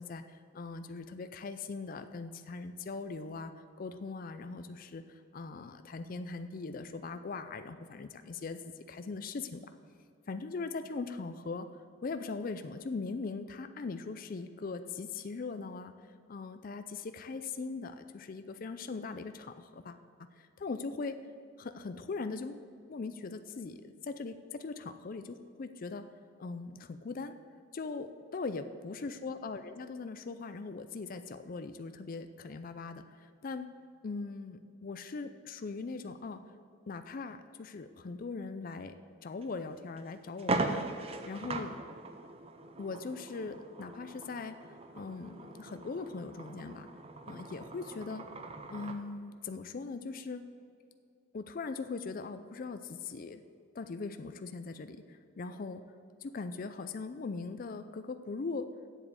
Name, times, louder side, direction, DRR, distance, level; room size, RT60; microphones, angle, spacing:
voice 1, 0.0-3.5 3.8-9.7 10.3-11.7 12.0-15.9 16.3-20.0 20.4-21.2 21.6-22.6 22.9-26.1 26.4-27.3 27.7-33.7 34.0-36.4 36.9-38.9 39.2-41.8 42.8-44.6 44.9-46.9 47.3-48.3 48.7-50.4 51.3-53.4 53.7-55.8 56.2-58.7, left 4 dB, 45° left, 9 dB, 0.4 m, -40 dB
sound 1, 39.4-39.5 40.0-40.1 40.4-49.0, right 2 dB, 30° right, 0.6 m, -39 dB
8.1 x 7.4 x 7.1 m, 2.4 s
head